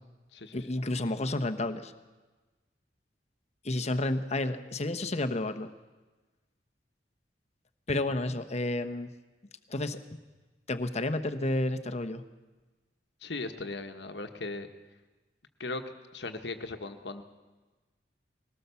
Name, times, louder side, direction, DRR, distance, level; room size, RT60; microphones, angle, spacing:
voice 1, 0.5-1.9 3.6-5.7 7.9-9.1 9.7-10.0 10.7-12.2, left 2 dB, 40° left, 9 dB, 1.1 m, -31 dB
voice 2, 13.2-14.7 15.6-15.8 16.1-17.2, left 3 dB, 70° left, 7 dB, 1.3 m, -38 dB
20.5 x 18.0 x 7.0 m, 1.2 s
head